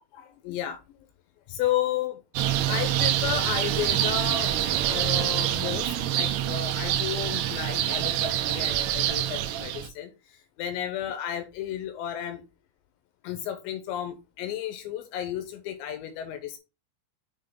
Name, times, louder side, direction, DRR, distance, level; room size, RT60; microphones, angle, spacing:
voice 1, 0.1-0.8 1.5-2.2 2.7-4.6 4.8-12.4 13.2-16.6, left 11 dB, 80° left, 2.7 m, -33 dB
sound 1, 2.4-9.9, right 11 dB, 90° right, 3.5 m, -26 dB
9.0 x 3.7 x 3.6 m
omnidirectional pair, 5.8 m